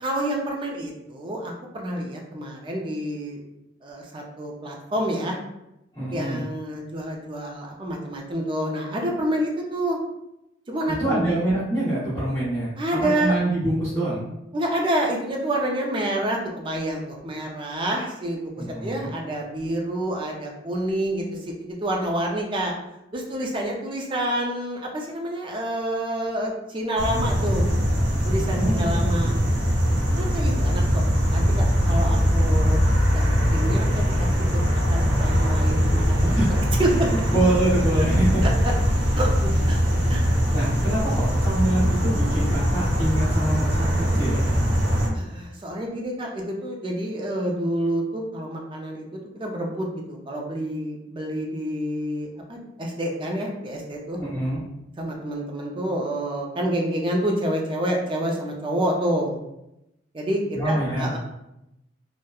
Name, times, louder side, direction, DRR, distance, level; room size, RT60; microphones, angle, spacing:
voice 1, 0.0-3.4 3.8-5.4 6.1-10.0 10.7-11.2 12.8-13.3 14.5-22.7 23.1-27.7 28.2-29.3 30.2-31.0 31.3-32.8 33.1-34.6 34.9-36.4 36.8-37.3 38.4-38.7 39.2-39.8 40.1-40.4 45.1-54.2 55.0-59.4 60.1-61.2, right 1 dB, 25° right, 0 dB, 0.4 m, -28 dB
voice 2, 6.0-6.4 11.0-12.7 13.0-14.2 18.6-19.1 28.5-29.4 36.2-36.6 36.9-38.4 40.5-44.4 54.2-54.6 60.5-61.1, right 1 dB, 15° left, -12 dB, 0.8 m, -25 dB
sound 1, 27.0-45.1, equal, 85° right, 0.6 m, -21 dB
2.9 x 2.1 x 2.2 m, 0.88 s
head